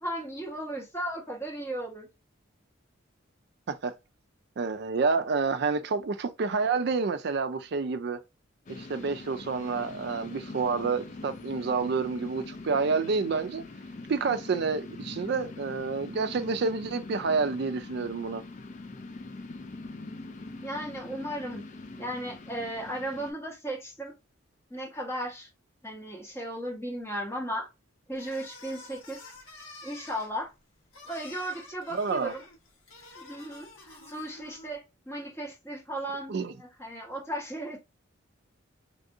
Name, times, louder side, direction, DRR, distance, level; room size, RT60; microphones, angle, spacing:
voice 1, 0.0-2.1 20.6-21.7 22.0-24.1 24.7-25.5 25.8-27.7 28.1-29.2 29.8-30.5 31.0-32.4 33.1-37.8, right 1 dB, 15° left, 1.1 m, -36 dB
voice 2, 4.6-8.2 8.7-13.6 14.1-18.4 31.9-32.3 36.3-36.5, right 4 dB, 55° right, 0.4 m, -29 dB
sound 1, 8.7-23.3, left 2 dB, 35° left, 0.4 m, -43 dB
sound 2, 28.1-34.8, left 2 dB, 80° left, 1.1 m, -49 dB
3.4 x 2.6 x 2.6 m
head